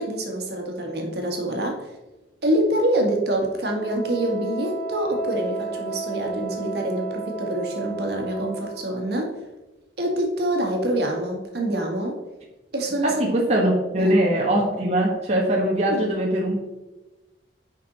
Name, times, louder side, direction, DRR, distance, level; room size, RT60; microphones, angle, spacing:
voice 1, 0.0-1.9 2.4-9.3 10.0-12.2 12.7-13.1 13.9-14.1 15.9-16.2, right 1 dB, 65° right, 1 dB, 1.8 m, -26 dB
Wind instrument woodwind instrument, 3.6-8.9, right 3 dB, 15° left, 1.9 m, -33 dB
voice 2, 13.0-16.6, right 1 dB, 40° right, -3 dB, 1.4 m, -21 dB
8.7 x 5.4 x 4.2 m, 1.1 s
head